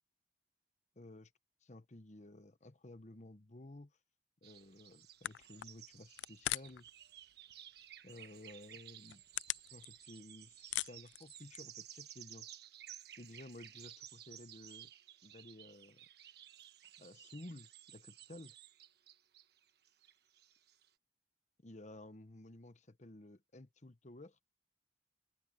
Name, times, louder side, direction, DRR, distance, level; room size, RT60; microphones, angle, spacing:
voice 1, 1.0-1.3 1.6-3.9 4.4-6.9 8.0-9.2 9.7-12.5 13.2-14.9 15.2-16.1 17.0-18.5 21.6-24.4, left 1 dB, 40° left, 1.0 m, -54 dB
sound 1, 4.4-20.9, right 11 dB, 60° right, 1.3 m, -56 dB
sound 2, 4.9-5.0 5.2-6.9 7.2-7.8 8.2-8.3 8.8-10.3 10.5-11.8, left 15 dB, 80° left, 0.3 m, -41 dB
head